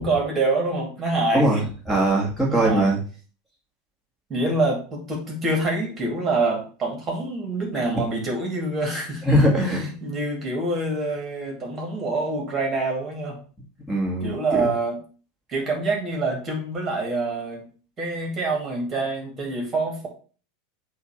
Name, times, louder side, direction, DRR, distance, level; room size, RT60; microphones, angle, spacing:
voice 1, 0.0-1.6 2.5-2.9 4.3-9.2 9.7-13.4 14.2-15.0 15.5-17.7 18.0-20.1, right 2 dB, 25° right, 0 dB, 2.5 m, -26 dB
voice 2, 1.3-3.0 9.2-9.9 13.9-14.7, right 1 dB, ahead, -3 dB, 2.2 m, -21 dB
7.9 x 2.8 x 5.9 m, 0.39 s
figure-of-eight pair, 85°, 0 cm